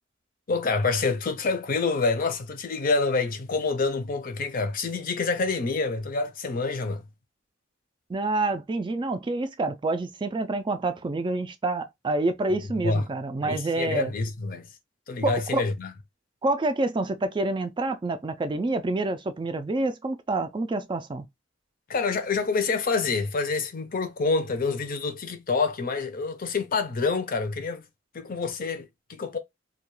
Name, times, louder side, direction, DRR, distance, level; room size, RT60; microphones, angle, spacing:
voice 1, 0.5-7.0 12.8-13.1 13.4-14.7 15.1-15.9 21.9-27.8 28.1-29.4, left 4 dB, 50° left, 0.5 m, -27 dB
voice 2, 8.1-14.1 15.2-15.6 16.4-21.3, right 2 dB, 25° right, 0.3 m, -27 dB
2.3 x 2.2 x 3.0 m
head